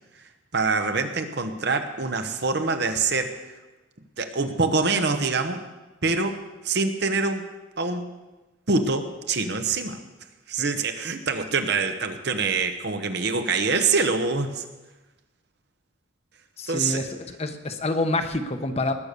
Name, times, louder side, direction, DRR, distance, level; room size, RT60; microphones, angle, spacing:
voice 1, 0.5-3.4 4.2-5.6 6.0-7.4 7.8-8.1 8.7-10.0 10.5-14.6 16.7-17.0, right 4 dB, 60° right, 7 dB, 1.1 m, -25 dB
voice 2, 16.6-18.9, left 2 dB, 35° left, 8 dB, 0.9 m, -27 dB
19.5 x 6.7 x 6.8 m, 1.1 s
head